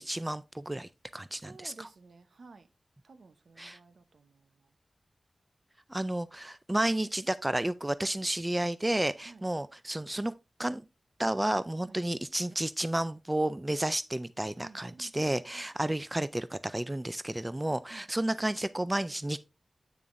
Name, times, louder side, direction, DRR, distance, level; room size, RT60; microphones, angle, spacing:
voice 1, 0.0-1.9 3.6-3.8 5.9-10.3 10.6-10.9 11.2-19.4, right 1 dB, 15° right, 0.3 m, -31 dB
voice 2, 1.4-2.7 3.0-4.7 9.2-9.4 11.9-12.0 14.6-15.7 17.9-18.1, right 3 dB, 75° right, 0.8 m, -54 dB
8.4 x 7.0 x 2.5 m
wide cardioid pair, 115°, 0 cm